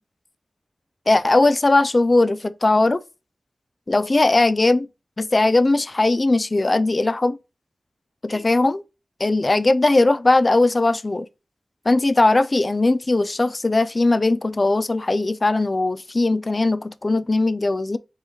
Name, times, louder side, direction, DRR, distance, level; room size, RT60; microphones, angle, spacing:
voice 1, 1.1-3.0 3.9-4.9 5.2-7.4 8.2-8.8 9.2-11.3 11.9-18.0, left 2 dB, 40° left, 0.3 m, -19 dB
3.9 x 3.9 x 3.0 m
wide cardioid pair, 70°, 0 cm